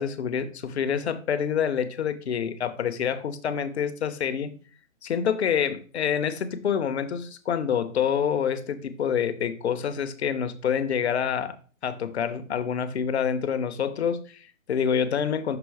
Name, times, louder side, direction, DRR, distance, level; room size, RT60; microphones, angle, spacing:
voice 1, 0.0-4.5 5.0-11.5 11.8-15.6, left 7 dB, 50° left, 0.8 m, -27 dB
6.0 x 3.7 x 4.8 m
hypercardioid pair, 160°, 41 cm